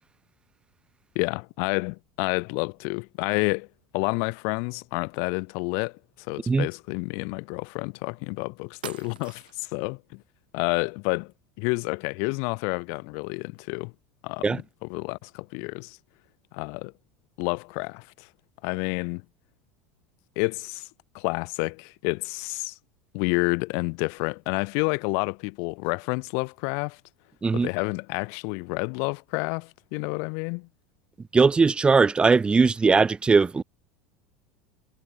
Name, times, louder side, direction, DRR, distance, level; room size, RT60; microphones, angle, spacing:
voice 1, 1.1-3.7 3.9-6.0 6.3-10.2 10.5-11.3 11.6-13.9 14.2-14.5 14.8-16.0 16.5-16.9 17.4-18.3 18.6-19.2 20.3-20.9 21.1-22.7 23.1-27.0 27.5-30.7, left 39 dB, 65° left, 1.5 m, -29 dB
sound 1, 8.2-8.3 8.8-9.7, right 12 dB, 85° right, 2.9 m, -42 dB
voice 2, 31.3-33.6, right 4 dB, 20° right, 2.5 m, -19 dB
hypercardioid pair, 85°, 5 cm